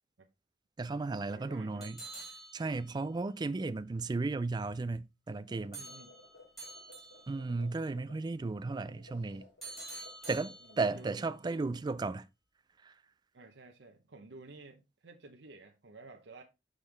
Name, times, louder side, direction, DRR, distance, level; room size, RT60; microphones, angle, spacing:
voice 1, 0.8-2.0 2.5-5.8 7.3-9.4 10.3-12.3 12.8-12.9, right 3 dB, 25° right, 0.3 m, -34 dB
voice 2, 1.3-1.9 5.7-6.2 10.6-11.7 13.3-16.4, right 3 dB, 70° right, 0.8 m, -53 dB
sound 1, 1.8-3.2 5.7-7.5 9.6-11.1, right 2 dB, ahead, 2.2 m, -48 dB
sound 2, 5.4-10.9, left 2 dB, 70° left, 3.6 m, -58 dB
6.3 x 5.5 x 3.3 m
head